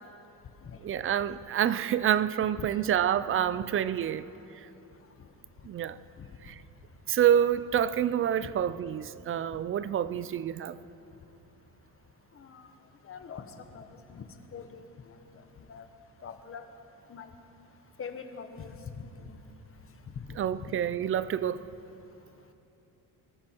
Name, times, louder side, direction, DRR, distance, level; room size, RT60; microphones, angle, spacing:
voice 1, 0.8-4.2 5.6-6.0 6.4-6.5 7.1-10.8 20.4-21.6, right 10 dB, 35° right, 0.4 m, -27 dB
voice 2, 12.3-12.7 13.0-15.8 16.2-16.6 17.1-17.3 18.0-19.5 20.1-20.8, left 6 dB, 35° left, 1.2 m, -44 dB
24.5 x 13.0 x 4.5 m
cardioid pair, 140°, 39 cm